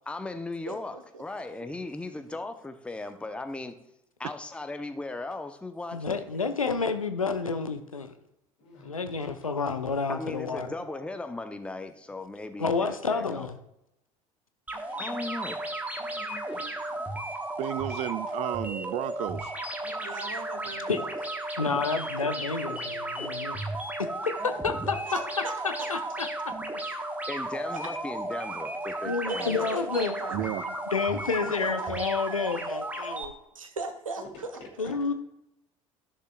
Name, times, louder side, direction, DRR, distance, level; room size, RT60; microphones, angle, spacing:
voice 1, 0.1-3.8 4.2-6.2 10.1-13.5 15.0-15.6 27.3-29.7 31.4-31.5, left 2 dB, 5° left, 8 dB, 0.7 m, -37 dB
voice 2, 0.7-1.2 10.7-11.0 20.0-21.1 25.0-25.9 27.7-27.9 29.3-30.4 31.4-32.0 33.5-34.2, right 3 dB, 80° right, 8 dB, 0.9 m, -38 dB
voice 3, 5.9-8.1 8.8-10.7 12.6-13.5 20.9-21.0 21.6-23.6 24.6-25.0 25.6-26.3 29.0-30.1 30.4-30.5 30.9-33.3 34.8-35.1, left 4 dB, 85° left, 9 dB, 0.5 m, -29 dB
voice 4, 8.6-9.0 14.7-15.2 16.0-17.2 19.8-20.2 24.4-24.9 31.6-31.7 34.2-34.3 34.5-35.0, left 2 dB, 60° left, 0 dB, 2.5 m, -50 dB
sound 1, 14.7-33.2, right 1 dB, 10° right, 1.2 m, -34 dB
voice 5, 17.6-19.5 30.3-30.6, right 14 dB, 40° right, 16 dB, 0.4 m, -32 dB
13.5 x 6.5 x 2.3 m, 0.86 s
figure-of-eight pair, 65°, 17 cm